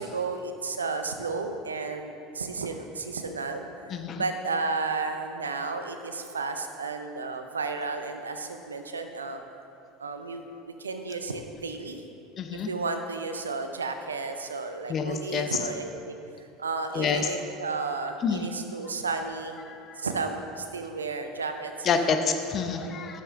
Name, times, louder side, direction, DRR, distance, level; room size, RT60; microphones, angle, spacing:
voice 1, 0.0-3.7 4.2-9.4 10.0-10.4 10.8-12.0 12.7-16.2 16.6-19.6 20.0-22.2 22.8-23.1, right 4 dB, 85° right, 7 dB, 0.5 m, -33 dB
voice 2, 3.9-4.2 12.4-12.7 14.9-15.5 16.9-17.3 18.2-18.4 19.7-20.0 21.8-23.2, left 5 dB, 40° left, 6 dB, 0.7 m, -28 dB
9.8 x 6.9 x 3.6 m, 2.6 s
hypercardioid pair, 75°, 0 cm